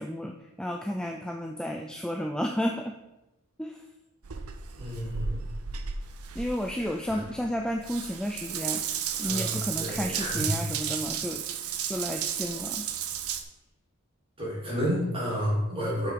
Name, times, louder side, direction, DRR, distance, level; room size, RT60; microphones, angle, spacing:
voice 1, 0.0-3.0 3.6-3.8 6.4-8.8 9.2-11.4 11.9-12.9, equal, 5° left, 3 dB, 0.4 m, -32 dB
Water tap faucet / Bathtub (filling or washing) / Drip, 4.2-13.4, right 8 dB, 80° right, 0.7 m, -34 dB
voice 2, 4.8-5.4 6.8-7.2 9.2-10.6 14.4-16.1, equal, 25° right, -6 dB, 3.3 m, -31 dB
7.5 x 6.0 x 5.2 m, 0.98 s
head